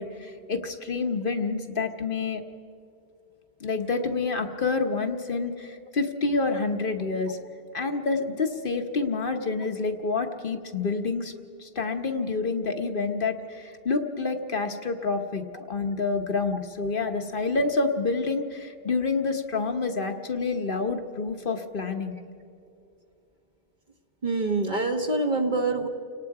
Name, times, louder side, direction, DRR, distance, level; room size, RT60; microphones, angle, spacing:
voice 1, 0.0-2.4 3.6-7.4 7.7-11.3 11.6-22.1, left 4 dB, 55° left, 5 dB, 1.2 m, -28 dB
voice 2, 24.2-25.9, right 3 dB, 45° right, 3 dB, 1.6 m, -25 dB
30.0 x 18.5 x 4.8 m, 2.6 s
omnidirectional pair, 1.1 m